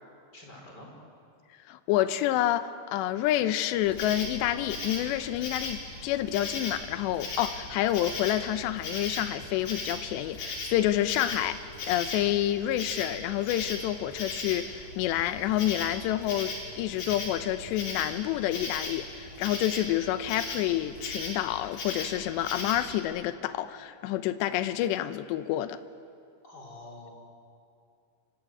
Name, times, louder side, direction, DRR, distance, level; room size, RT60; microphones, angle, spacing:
voice 1, 0.3-0.9 26.4-27.1, left 2 dB, 25° left, 5.5 m, -46 dB
voice 2, 1.7-25.8, left 13 dB, 85° left, 3.1 m, -28 dB
Insect, 3.8-23.0, left 2 dB, 60° left, 5.9 m, -38 dB
29.0 x 25.0 x 8.1 m
omnidirectional pair, 4.9 m